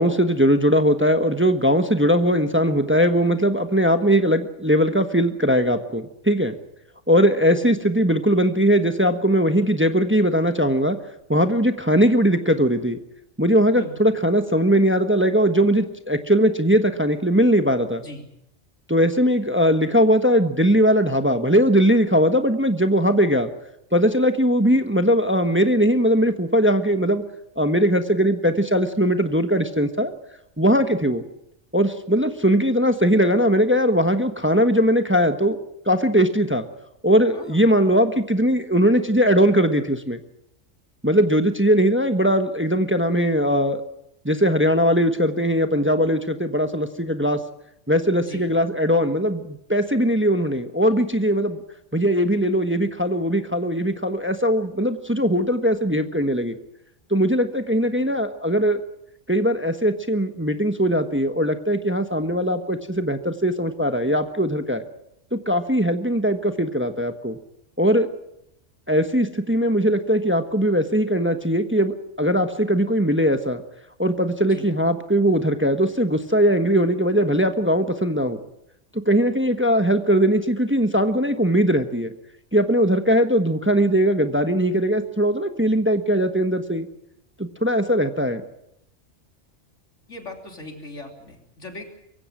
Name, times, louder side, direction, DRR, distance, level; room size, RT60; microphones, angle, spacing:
voice 1, 0.0-6.6 7.1-11.0 11.3-13.0 13.4-18.0 18.9-23.5 23.9-27.2 27.6-30.1 30.6-31.2 31.7-35.6 35.8-36.7 37.0-40.2 41.0-43.8 44.2-47.4 47.9-51.6 51.9-56.5 57.1-58.8 59.3-64.8 65.3-67.4 67.8-68.1 68.9-73.6 74.0-78.4 79.1-82.1 82.5-86.9 87.4-88.4, equal, 10° right, 8 dB, 1.2 m, -20 dB
voice 2, 37.3-37.7 48.2-48.5 74.5-74.7 90.1-91.9, left 1 dB, 85° left, 3 dB, 3.9 m, -39 dB
23.5 x 16.0 x 9.0 m, 0.79 s
omnidirectional pair, 1.2 m